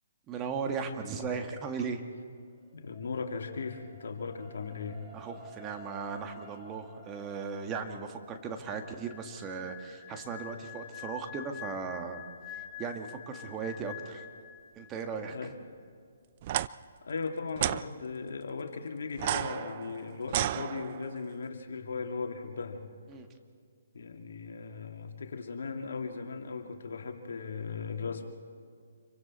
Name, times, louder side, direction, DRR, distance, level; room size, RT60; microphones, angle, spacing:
voice 1, 0.3-2.0 5.1-12.2 12.5-14.2 14.7-15.5 23.1-23.3, right 5 dB, 20° right, 5 dB, 1.7 m, -37 dB
sound 1, 2.3-14.6 15.2-15.3, right 2 dB, 5° left, 2.7 m, -56 dB
voice 2, 2.7-5.0 15.3-15.5 17.0-22.8 23.9-28.3, left 4 dB, 70° left, 3 dB, 2.3 m, -37 dB
sound 2, 8.7-15.1 15.3-15.6, left 11 dB, 25° left, 1.6 m, -46 dB
sound 3, 16.4-16.7 17.6-17.8 19.1-21.2, right 13 dB, 40° right, 0.4 m, -32 dB
28.0 x 23.5 x 4.3 m, 2.1 s
hypercardioid pair, 140°, 0 cm